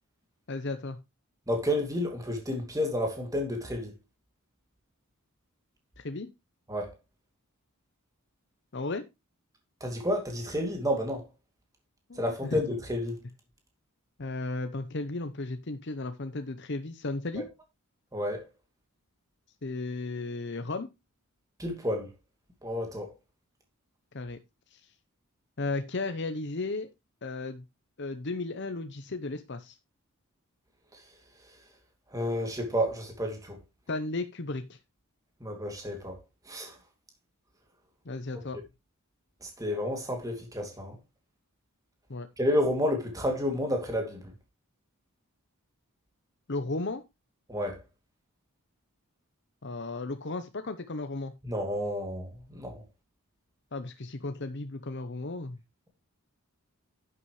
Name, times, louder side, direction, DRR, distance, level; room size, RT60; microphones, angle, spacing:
voice 1, 0.5-1.0 6.0-6.3 8.7-9.0 12.1-12.6 14.2-17.5 19.6-20.9 24.1-24.4 24.7-24.9 25.6-26.9 27.2-27.6 28.0-29.8 33.9-34.8 38.0-38.6 42.1-42.3 46.5-47.0 49.6-51.3 53.7-55.6, left 2 dB, 50° left, 0.8 m, -34 dB
voice 2, 1.5-3.9 6.7-6.9 9.8-11.2 12.2-13.2 17.4-17.5 18.1-18.4 21.6-22.1 22.6-23.1 30.9-31.0 32.1-33.6 35.4-36.2 36.5-36.8 39.4-41.0 42.4-44.3 47.5-47.8 51.4-52.8, equal, 15° right, 2.6 m, -30 dB
11.0 x 8.4 x 3.2 m
head